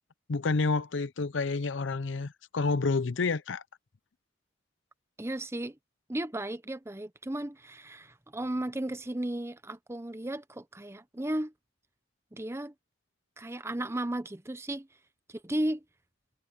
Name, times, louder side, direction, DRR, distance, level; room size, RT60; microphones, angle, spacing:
voice 1, 0.3-3.6, left 3 dB, 75° left, 0.6 m, -29 dB
voice 2, 5.2-5.8 6.1-11.5 12.3-12.7 13.4-14.9 15.3-15.8, right 1 dB, 15° right, 0.8 m, -34 dB
head